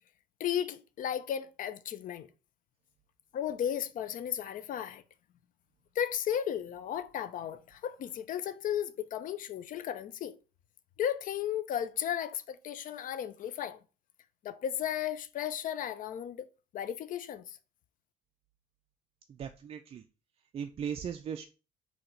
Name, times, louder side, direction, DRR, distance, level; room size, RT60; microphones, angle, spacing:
voice 1, 0.4-2.3 3.3-5.0 6.0-10.4 11.0-13.8 14.4-16.5 16.7-17.6, left 10 dB, 55° left, 0.5 m, -34 dB
voice 2, 19.4-20.0 20.5-21.4, right 8 dB, 35° right, 0.4 m, -37 dB
4.0 x 2.8 x 4.4 m
cardioid pair, 110°, 17 cm